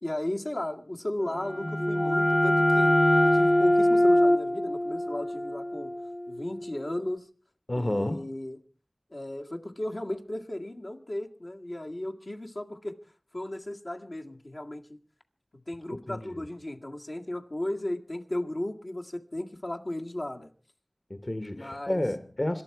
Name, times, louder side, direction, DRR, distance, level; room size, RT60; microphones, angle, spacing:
voice 1, 0.0-5.9 6.3-7.3 7.8-8.6 9.1-13.0 13.3-15.0 15.5-20.5 21.5-22.0, left 1 dB, 70° left, 1.9 m, -35 dB
sound 1, 1.3-6.8, left 1 dB, 20° left, 0.7 m, -24 dB
voice 2, 7.7-8.3 16.1-16.4 21.1-22.6, left 1 dB, 45° left, 1.2 m, -30 dB
26.0 x 11.5 x 4.7 m
wide cardioid pair, 45°, 0 cm